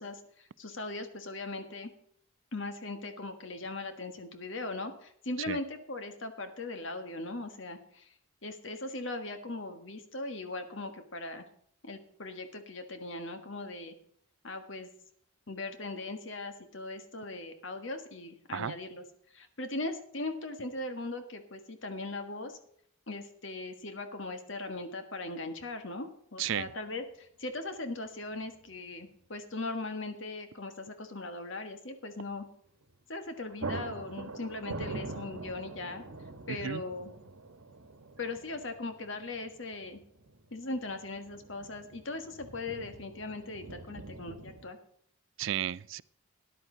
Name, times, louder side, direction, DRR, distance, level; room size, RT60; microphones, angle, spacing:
voice 1, 0.0-1.9 2.5-8.1 8.4-11.4 11.8-13.9 14.4-14.9 15.5-19.0 19.3-22.6 23.1-32.4 33.1-36.0 36.5-37.1 38.2-40.0 40.5-44.8, left 2 dB, 60° left, 1.5 m, -39 dB
voice 2, 26.4-26.7 36.5-36.8 45.4-46.0, right 9 dB, 60° right, 0.4 m, -33 dB
sound 1, 28.4-28.8 29.0-29.1 32.8-33.0 33.3-44.7, right 3 dB, 80° right, 1.3 m, -44 dB
13.5 x 10.5 x 3.9 m
head